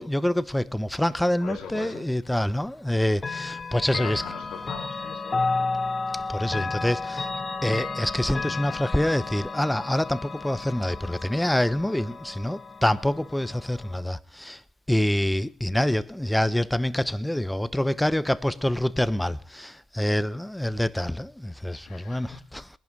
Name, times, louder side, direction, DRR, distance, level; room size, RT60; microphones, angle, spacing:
voice 1, 0.0-4.2 6.3-7.3 7.6-14.6 14.9-22.6, left 1 dB, 5° left, 0.8 m, -26 dB
voice 2, 1.4-2.4 3.7-5.8 21.9-22.6, left 6 dB, 75° left, 2.8 m, -41 dB
Chime / Clock, 3.2-14.0, left 3 dB, 25° left, 2.0 m, -32 dB
20.0 x 11.0 x 5.2 m
cardioid pair, 85°, 0 cm